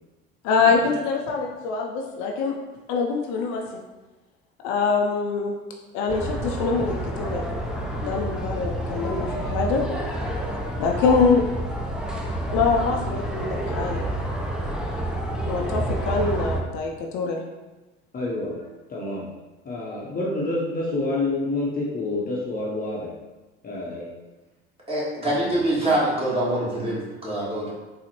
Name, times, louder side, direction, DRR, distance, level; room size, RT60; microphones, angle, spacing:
voice 1, 0.4-2.5 2.9-3.6 4.6-5.5 5.9-7.5 8.0-9.8 10.8-11.4 12.5-14.1 15.5-17.4, left 4 dB, 65° left, 1 dB, 0.5 m, -24 dB
sound 1, 6.1-16.6, right 1 dB, ahead, 0.4 m, -29 dB
voice 2, 18.1-18.5 18.9-19.3 19.7-23.0 23.6-24.1 25.3-25.4, left 2 dB, 30° left, -4 dB, 0.7 m, -28 dB
voice 3, 24.9-27.7, right 1 dB, 20° right, -7 dB, 1.5 m, -24 dB
3.8 x 2.1 x 2.9 m, 1.1 s
hypercardioid pair, 70°, 30 cm